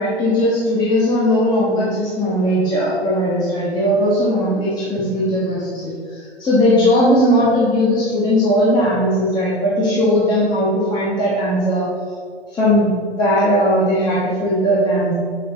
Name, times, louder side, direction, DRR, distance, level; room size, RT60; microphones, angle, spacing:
voice 1, 0.0-11.9 12.5-15.1, equal, 10° left, -9 dB, 1.4 m, -18 dB
7.9 x 6.5 x 3.9 m, 2.2 s
hypercardioid pair, 140°, 33 cm